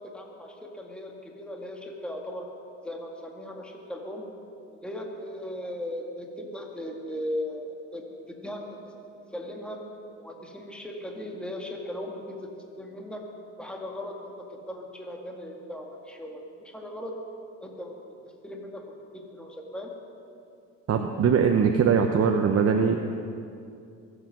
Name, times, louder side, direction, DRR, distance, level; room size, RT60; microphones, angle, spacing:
voice 1, 0.0-2.5 2.8-4.3 4.7-8.9 9.3-9.8 10.1-13.2 13.6-17.1 17.6-18.0 18.2-18.8 19.1-19.9, left 1 dB, 5° left, 0 dB, 2.1 m, -38 dB
voice 2, 20.9-23.0, right 6 dB, 45° right, 3 dB, 1.0 m, -21 dB
22.5 x 8.4 x 6.3 m, 2.5 s
supercardioid pair, 90°, 33 cm